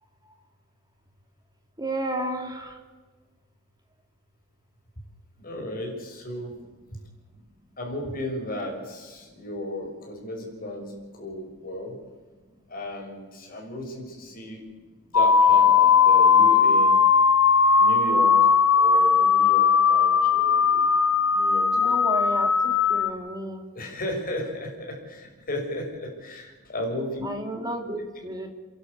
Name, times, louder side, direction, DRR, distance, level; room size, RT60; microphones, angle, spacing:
voice 1, 1.8-2.8 21.8-23.7 27.2-28.5, right 1 dB, 20° right, 4 dB, 2.7 m, -32 dB
voice 2, 5.4-6.5 6.9-7.0 7.8-12.0 12.7-14.6 15.1-17.0 17.8-20.9 21.3-21.9 23.7-27.3 27.5-27.6, left 1 dB, 40° left, 0 dB, 6.2 m, -34 dB
sound 1, 15.1-23.1, left 6 dB, 80° left, 1.2 m, -18 dB
29.5 x 11.0 x 8.3 m, 1.4 s
head